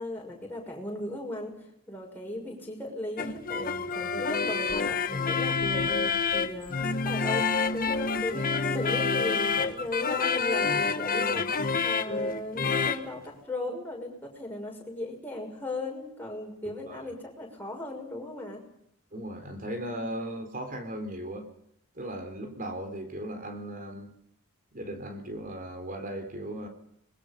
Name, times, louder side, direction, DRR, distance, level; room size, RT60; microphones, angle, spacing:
voice 1, 0.0-6.8 7.0-18.6, left 1 dB, 10° left, -1 dB, 6.1 m, -37 dB
sound 1, 3.2-13.1, left 5 dB, 40° left, 1.2 m, -28 dB
voice 2, 16.6-17.1 19.1-21.5 22.0-24.1 24.7-26.7, right 1 dB, 40° right, 6 dB, 4.1 m, -37 dB
25.5 x 21.5 x 5.4 m, 0.75 s
head